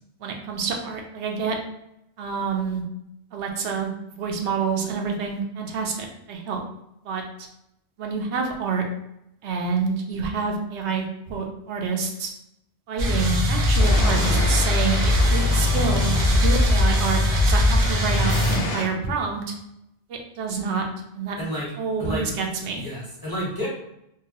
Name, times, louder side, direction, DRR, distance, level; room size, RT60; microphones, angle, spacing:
voice 1, 0.2-1.6 2.2-2.8 3.3-3.9 4.2-6.6 7.0-7.5 8.0-8.8 9.4-12.3 12.9-19.5 20.1-20.9 21.1-21.4 21.8-22.8, right 5 dB, 80° right, 2 dB, 0.9 m, -28 dB
sound 1, 13.0-18.6, left 1 dB, 55° right, 0.7 m, -20 dB
sound 2, 13.8-18.8, left 3 dB, 70° left, 0.8 m, -31 dB
voice 2, 21.4-21.7 22.0-22.2 22.8-23.7, equal, 20° left, -7 dB, 0.8 m, -30 dB
2.8 x 2.2 x 2.9 m, 0.80 s
omnidirectional pair, 1.1 m